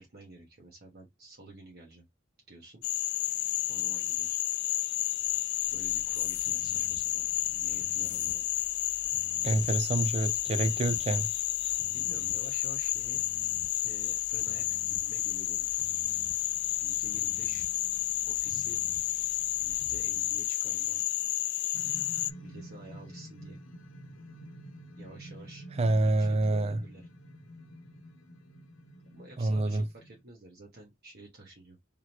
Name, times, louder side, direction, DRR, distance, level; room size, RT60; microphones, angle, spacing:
voice 1, 0.0-2.0 2.5-2.8 3.7-4.4 5.7-8.5 11.9-13.2 13.8-15.7 16.7-17.7 18.3-18.8 19.6-21.0 22.4-23.6 24.9-25.7 26.0-27.1 29.0-31.8, right 2 dB, 55° right, 1.3 m, -50 dB
Frog, 2.8-22.3, left 16 dB, 60° left, 0.3 m, -31 dB
sound 1, 5.2-21.3 21.6-21.7, left 3 dB, 20° left, 1.0 m, -52 dB
voice 2, 9.4-11.3 25.8-26.8 29.4-29.9, right 2 dB, 30° right, 0.4 m, -27 dB
sound 2, 21.7-30.2, equal, 80° left, 0.8 m, -48 dB
3.7 x 3.2 x 2.8 m
head